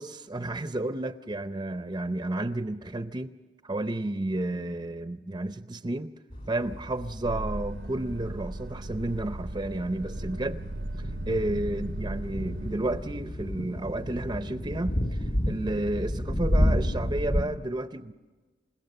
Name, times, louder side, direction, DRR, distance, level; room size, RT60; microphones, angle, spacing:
voice 1, 0.0-3.3 3.6-6.1 6.5-10.6 11.3-18.1, right 1 dB, 25° right, 0.6 m, -31 dB
sound 1, 6.3-17.5, equal, 45° left, 2.1 m, -31 dB
sound 2, 7.2-12.7, right 1 dB, 65° right, 0.7 m, -37 dB
29.0 x 16.5 x 6.7 m
head